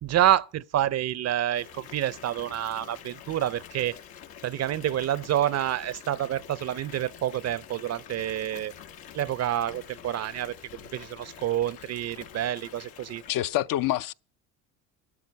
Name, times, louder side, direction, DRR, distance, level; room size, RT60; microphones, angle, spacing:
voice 1, 0.0-4.0 4.4-8.7 9.1-10.6 10.9-13.2, right 12 dB, 45° right, 0.6 m, -28 dB
Water tap faucet / Bathtub (filling or washing) / Fill (with liquid), 1.5-13.3, left 9 dB, 90° left, 1.8 m, -47 dB
voice 2, 13.3-14.1, left 13 dB, 60° left, 0.7 m, -26 dB
14.0 x 12.5 x 5.3 m
cardioid pair, 100°, 36 cm